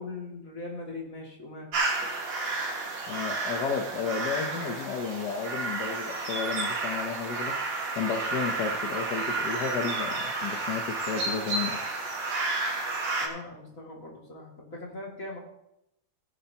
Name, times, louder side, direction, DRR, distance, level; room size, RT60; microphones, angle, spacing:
voice 1, 0.0-1.7 13.2-15.4, left 2 dB, 40° left, -2 dB, 2.8 m, -40 dB
sound 1, 1.7-13.3, right 3 dB, 75° right, 2.7 m, -31 dB
voice 2, 3.1-7.5 8.0-11.8, left 6 dB, 60° left, 3 dB, 1.4 m, -32 dB
17.0 x 10.0 x 2.9 m, 0.82 s
omnidirectional pair, 2.3 m